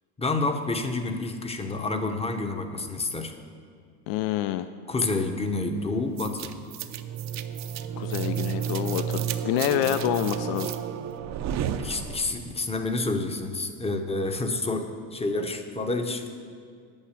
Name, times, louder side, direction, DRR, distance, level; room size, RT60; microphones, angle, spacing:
voice 1, 0.2-3.3 4.9-6.5 11.8-16.3, left 2 dB, 10° left, 6 dB, 0.8 m, -29 dB
voice 2, 4.1-4.7 8.0-10.7, left 13 dB, 75° left, 11 dB, 0.6 m, -27 dB
sound 1, 6.2-12.5, right 8 dB, 35° right, 0.5 m, -31 dB
8.9 x 6.2 x 8.1 m, 2.1 s
supercardioid pair, 115°, 48 cm